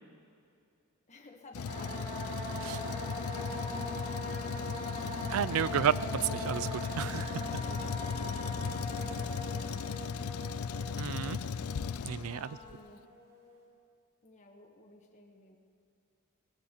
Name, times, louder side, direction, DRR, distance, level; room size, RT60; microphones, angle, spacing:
voice 1, 1.1-2.3 2.6-3.0 3.2-4.9 5.6-5.8 7.6-8.1 8.9-10.7 12.3-13.0 14.2-15.6, left 2 dB, 35° left, 1 dB, 1.3 m, -54 dB
Truck, 1.5-12.7, left 6 dB, 80° left, 0.4 m, -37 dB
sound 1, 1.6-13.5, left 1 dB, 45° right, 4.0 m, -41 dB
voice 2, 5.3-7.6 11.0-11.4 12.1-12.6, right 8 dB, 75° right, 18 dB, 0.4 m, -32 dB
19.5 x 16.0 x 4.4 m, 2.5 s
head